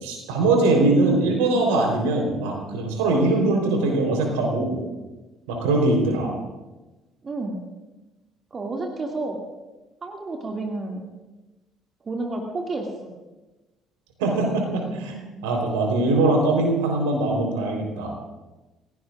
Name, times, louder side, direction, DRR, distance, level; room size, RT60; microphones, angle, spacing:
voice 1, 0.0-4.8 5.5-6.4 14.2-18.1, right 2 dB, 70° right, 2 dB, 3.9 m, -22 dB
voice 2, 7.2-7.6 8.5-9.4 10.0-11.0 12.0-13.1, right 2 dB, 35° right, 1 dB, 2.3 m, -30 dB
28.5 x 17.0 x 2.5 m, 1.1 s
figure-of-eight pair, 50°, 0 cm